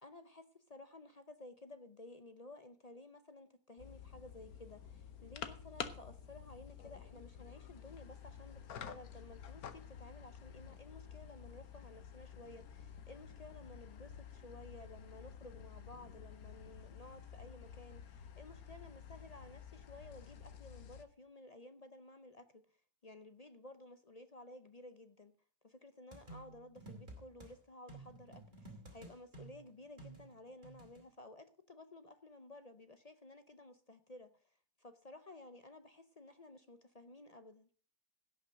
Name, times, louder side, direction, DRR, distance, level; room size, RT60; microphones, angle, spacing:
voice 1, 0.0-22.7 23.0-25.4 25.6-37.7, left 2 dB, 45° left, 0.5 m, -55 dB
sound 1, 3.8-21.0, left 8 dB, 65° left, 1.4 m, -51 dB
sound 2, 26.1-27.5 27.9-31.0, right 2 dB, 30° right, 2.9 m, -53 dB
16.5 x 5.9 x 6.3 m
omnidirectional pair, 1.7 m